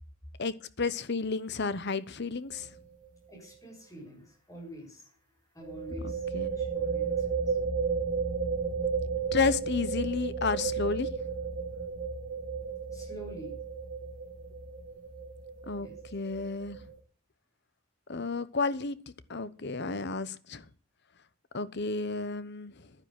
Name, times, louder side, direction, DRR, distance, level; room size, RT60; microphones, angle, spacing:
voice 1, 0.4-2.7 6.0-6.6 9.3-11.1 15.7-16.8 18.1-19.0 19.3-20.6 21.5-22.7, left 4 dB, 55° left, 1.0 m, -32 dB
sound 1, 2.5-2.8 3.0-3.1 5.6-17.0, right 5 dB, 40° right, 2.8 m, -33 dB
voice 2, 3.3-5.2 5.5-7.6 12.9-13.6 15.8-16.0, equal, 15° left, 6.8 m, -46 dB
10.5 x 10.0 x 8.9 m
head